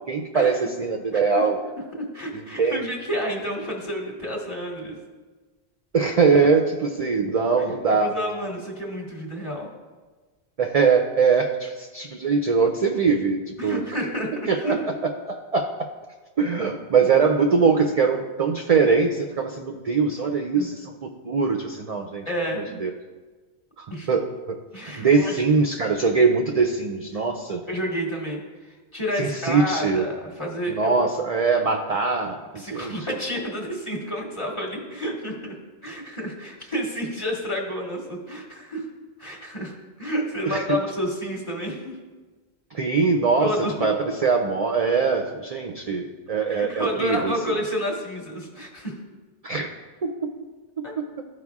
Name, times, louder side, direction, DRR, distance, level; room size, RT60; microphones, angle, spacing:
voice 1, 0.1-1.6 2.6-2.9 5.9-8.2 10.6-13.8 14.5-14.8 15.0-15.9 16.4-20.9 21.2-22.2 22.8-22.9 23.8-24.6 25.0-27.6 29.2-30.1 30.7-32.9 40.4-40.6 42.7-47.3 49.4-49.7 50.0-50.3 51.0-51.2, right 5 dB, 50° right, 4 dB, 0.5 m, -22 dB
voice 2, 1.1-1.5 1.9-5.0 8.0-9.7 13.6-14.8 20.5-20.7 22.2-22.8 23.9-24.1 24.7-25.4 27.7-31.0 32.5-35.6 35.8-38.9 39.2-42.0 43.4-43.7 46.5-49.0 50.8-50.9, equal, 30° left, -2 dB, 1.4 m, -30 dB
14.0 x 4.8 x 2.3 m, 1.3 s
omnidirectional pair, 1.1 m